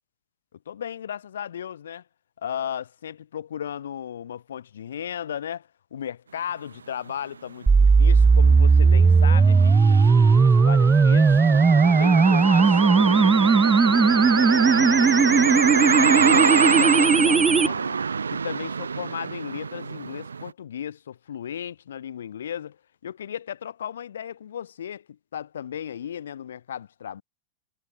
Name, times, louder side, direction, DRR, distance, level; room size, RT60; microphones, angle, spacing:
voice 1, 0.7-2.0 2.4-11.3 11.8-13.6 14.6-15.6 16.1-18.0 18.3-22.8 23.0-27.2, left 9 dB, 80° left, 1.8 m, -35 dB
sound 1, 7.1-7.2 7.6-20.5, right 5 dB, 90° right, 2.9 m, -26 dB
sound 2, 7.7-17.7, right 4 dB, 15° right, 0.3 m, -17 dB
hypercardioid pair, 100°, 0 cm